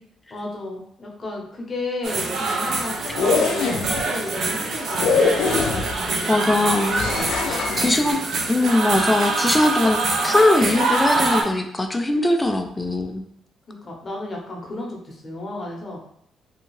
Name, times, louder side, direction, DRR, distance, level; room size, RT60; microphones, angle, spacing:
voice 1, 0.3-6.6 7.1-8.3 13.7-16.0, left 2 dB, 35° left, -1 dB, 0.8 m, -34 dB
sound 1, 2.0-11.4, right 3 dB, 65° right, 0.5 m, -25 dB
sound 2, 3.0-4.0 5.0-6.1 7.0-8.0, left 4 dB, 80° left, 0.4 m, -22 dB
voice 2, 6.3-7.2 7.5-8.2 8.5-13.2, left 1 dB, 15° left, 5 dB, 0.4 m, -21 dB
2.7 x 2.3 x 3.1 m, 0.68 s
cardioid pair, 90°, 0 cm